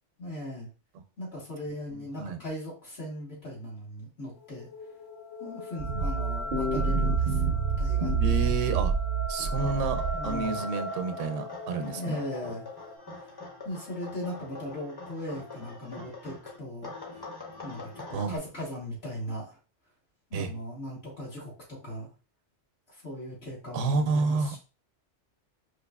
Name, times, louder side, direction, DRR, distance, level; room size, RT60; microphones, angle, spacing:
voice 1, 0.2-0.7 1.2-4.7 5.4-8.4 10.1-10.6 11.8-12.7 13.6-17.2 17.6-17.8 18.1-19.6 20.3-22.1 22.9-24.6, left 1 dB, 60° left, -5 dB, 1.6 m, -38 dB
sound 1, 4.3-13.0, equal, 85° left, 1.0 m, -39 dB
sound 2, 5.8-10.5, right 5 dB, 60° right, 0.6 m, -27 dB
voice 2, 8.2-8.9 9.3-12.2 18.1-18.4 20.3-20.5 23.7-24.6, right 4 dB, 90° right, 9 dB, 0.9 m, -29 dB
sound 3, 9.5-16.6 16.8-18.4, left 3 dB, 25° left, 0.7 m, -44 dB
4.5 x 2.6 x 2.3 m, 0.34 s
omnidirectional pair, 1.2 m